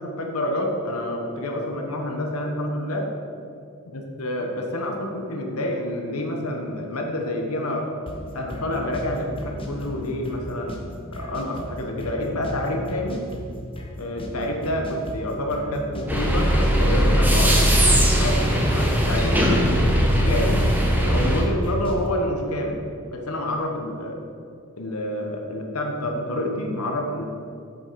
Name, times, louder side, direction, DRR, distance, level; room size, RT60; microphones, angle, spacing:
voice 1, 0.0-3.1 3.9-7.9 8.3-10.8 11.1-13.3 14.0-17.6 18.2-19.7 20.0-22.8 23.1-24.2 24.8-27.3, left 1 dB, 80° left, 2 dB, 1.1 m, -28 dB
sound 1, 8.1-22.1, equal, 25° left, 0.9 m, -36 dB
sound 2, 16.1-21.4, equal, 10° right, 1.0 m, -19 dB
7.7 x 7.5 x 4.7 m, 2.5 s
head